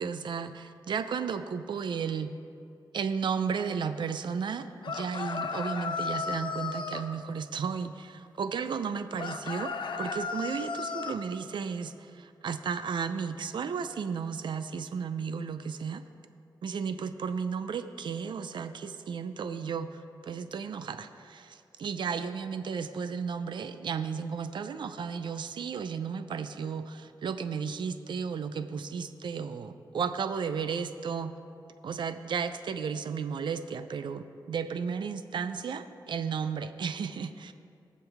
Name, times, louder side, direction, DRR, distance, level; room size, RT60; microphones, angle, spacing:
voice 1, 0.0-2.3 2.9-9.7 10.0-16.0 16.6-31.3 31.8-37.5, right 6 dB, 75° right, 10 dB, 0.5 m, -34 dB
sound 1, 4.8-7.1 9.2-11.2, left 5 dB, 75° left, 0.8 m, -34 dB
19.5 x 7.5 x 3.5 m, 2.5 s
cardioid pair, 65°, 8 cm